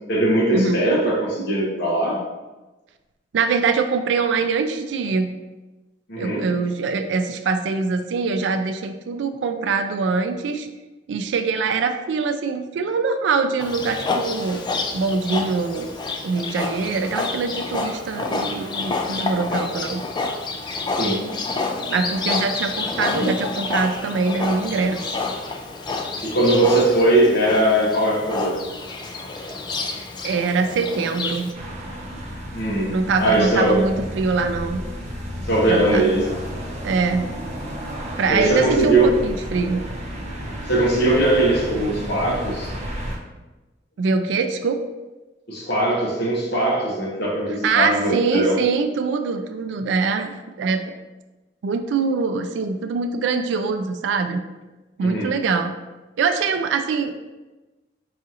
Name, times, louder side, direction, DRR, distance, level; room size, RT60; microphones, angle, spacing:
voice 1, 0.1-2.2 6.1-6.5 20.9-21.3 26.2-28.6 32.5-33.8 35.4-36.4 38.3-39.2 40.6-42.7 45.5-48.6 55.0-55.3, right 1 dB, 65° left, -4 dB, 1.0 m, -20 dB
voice 2, 3.3-5.3 6.2-10.7 11.1-14.6 14.9-15.9 16.2-20.0 21.9-25.2 30.2-31.5 32.9-34.8 35.7-36.1 36.8-37.3 38.2-39.8 44.0-44.8 47.6-50.9 51.6-54.4 55.0-55.7 56.2-57.3, right 4 dB, 70° right, 7 dB, 0.3 m, -23 dB
Livestock farm animals working animals, 13.6-31.5, left 3 dB, 25° left, 0.3 m, -28 dB
sound 1, 31.5-43.2, equal, 35° right, 0.6 m, -32 dB
4.9 x 2.4 x 2.8 m, 1.1 s
head